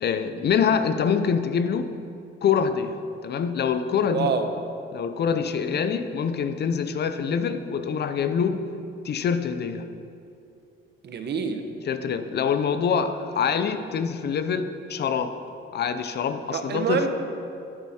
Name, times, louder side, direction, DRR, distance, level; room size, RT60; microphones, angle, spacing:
voice 1, 0.0-1.9 2.4-4.3 4.9-8.6 9.0-9.9 11.9-15.4 15.7-17.0, left 6 dB, 55° left, 10 dB, 0.7 m, -25 dB
voice 2, 4.1-4.5 11.0-11.6 16.5-17.1, right 5 dB, 55° right, 6 dB, 1.0 m, -26 dB
11.0 x 8.5 x 4.3 m, 2.6 s
cardioid pair, 95°, 21 cm